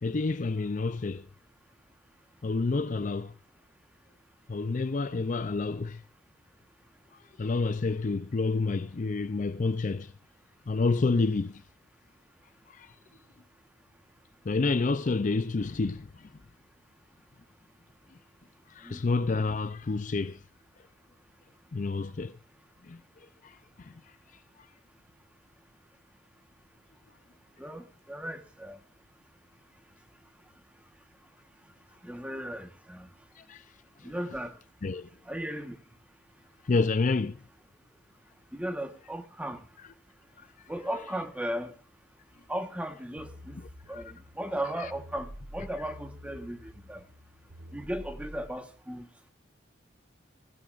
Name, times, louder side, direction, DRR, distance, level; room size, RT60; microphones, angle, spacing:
voice 1, 0.0-1.3 2.4-3.3 4.5-6.0 7.4-10.1 10.7-11.6 12.7-12.9 14.4-16.3 18.7-20.4 21.7-22.4 22.8-23.0 23.4-23.9 33.4-33.6 34.0-34.1 34.8-35.1 36.7-37.4 43.9-44.0 44.8-44.9, left 3 dB, 45° left, 0.5 m, -29 dB
voice 2, 27.6-28.8 32.0-33.1 34.0-34.6 35.2-35.8 38.5-39.6 40.7-41.7 42.5-43.6 43.9-47.0 47.7-49.1, right 1 dB, 5° right, 1.2 m, -36 dB
sound 1, 43.2-48.5, equal, 90° right, 1.7 m, -48 dB
16.5 x 15.0 x 2.5 m
head